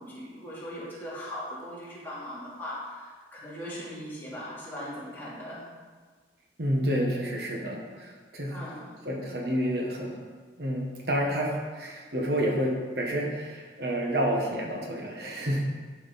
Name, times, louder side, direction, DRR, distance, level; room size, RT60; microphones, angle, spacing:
voice 1, 0.0-5.7 8.5-8.9, equal, 10° left, -9 dB, 2.8 m, -39 dB
voice 2, 6.6-8.6 9.0-10.2 10.6-15.7, equal, 65° right, -1 dB, 1.3 m, -29 dB
11.0 x 5.8 x 4.1 m, 1.4 s
head